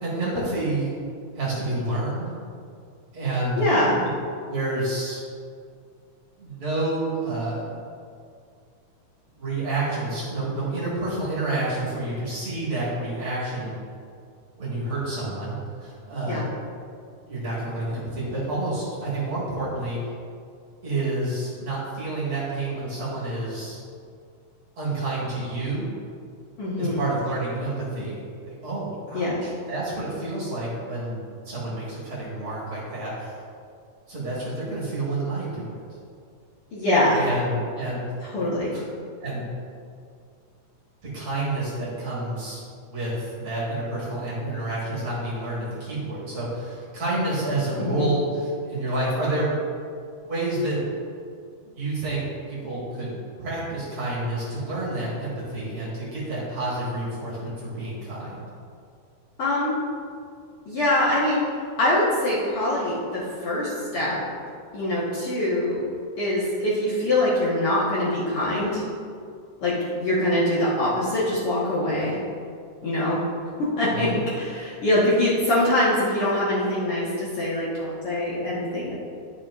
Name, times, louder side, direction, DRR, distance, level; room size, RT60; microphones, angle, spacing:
voice 1, 0.0-0.9 1.3-2.3 3.1-3.6 4.5-5.2 6.4-7.7 9.3-13.7 14.6-15.6 15.8-16.5 17.2-20.0 20.8-23.8 24.8-25.9 26.8-31.2 31.5-33.4 34.1-35.8 37.1-38.1 38.7-38.9 39.2-39.6 41.0-42.6 42.9-49.5 50.2-50.8 51.6-53.1 53.4-58.5 73.9-74.1, right 2 dB, 50° right, -7 dB, 2.2 m, -29 dB
voice 2, 3.6-4.0 16.3-16.4 26.6-27.0 29.1-29.4 36.7-37.2 38.2-38.7 47.8-48.1 59.4-59.8 60.7-64.2 64.7-65.8 66.2-68.8 69.6-72.2 72.8-73.2 73.6-78.9, left 1 dB, 55° left, -8 dB, 1.8 m, -23 dB
11.5 x 5.4 x 2.4 m, 2.2 s
omnidirectional pair, 3.6 m